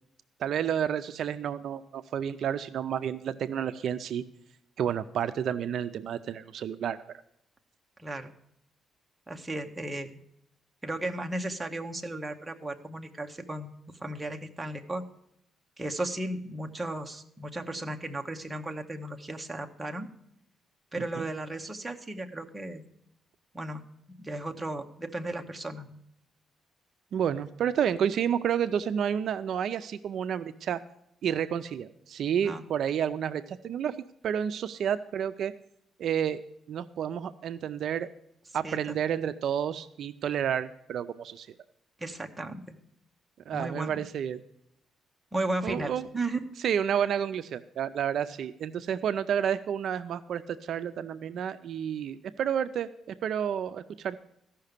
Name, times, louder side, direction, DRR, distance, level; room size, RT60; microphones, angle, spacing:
voice 1, 0.4-4.2 4.8-7.2 21.0-21.2 27.1-30.8 31.2-34.0 34.2-35.5 36.0-36.4 36.7-38.1 38.5-41.6 43.5-44.4 45.6-46.1 46.6-54.2, right 9 dB, 55° right, 11 dB, 0.4 m, -30 dB
voice 2, 8.0-8.3 9.3-10.1 10.8-15.0 15.8-20.1 20.9-22.8 23.5-23.8 24.2-26.0 32.4-32.6 38.6-38.8 42.0-42.8 43.5-44.0 45.3-46.5, right 2 dB, 10° right, 3 dB, 0.8 m, -35 dB
14.0 x 5.8 x 6.6 m, 0.76 s
cardioid pair, 170°, 0 cm